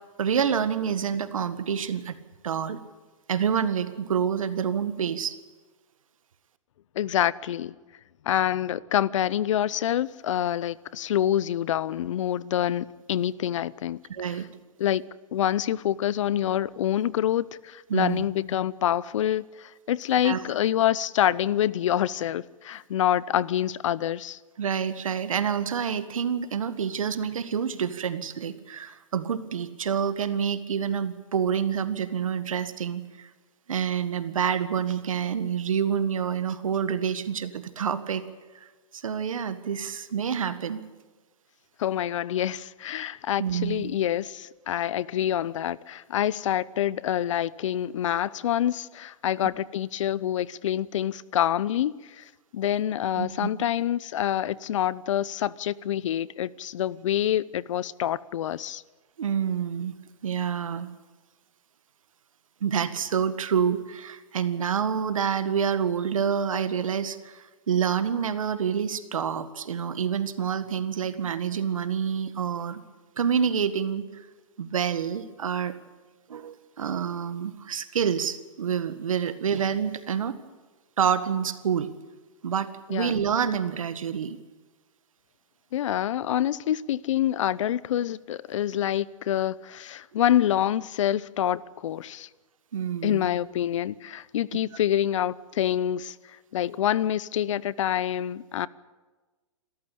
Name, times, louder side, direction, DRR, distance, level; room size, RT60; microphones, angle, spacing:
voice 1, 0.2-2.2 2.4-2.8 3.3-5.3 14.1-14.5 17.9-18.2 20.2-20.4 24.6-33.3 33.7-38.2 38.9-40.8 43.4-43.9 53.2-53.5 59.2-59.9 60.2-60.9 62.6-72.8 73.2-74.3 74.6-75.7 76.3-80.3 81.0-81.9 82.4-84.4 92.7-93.3, right 7 dB, 80° right, 1.8 m, -27 dB
voice 2, 6.9-7.7 8.3-14.4 14.8-15.0 15.3-24.4 41.8-58.8 82.9-83.2 85.7-92.3 93.0-96.2 96.5-98.7, left 11 dB, 70° left, 0.7 m, -26 dB
27.5 x 14.0 x 8.6 m
hypercardioid pair, 130°, 17 cm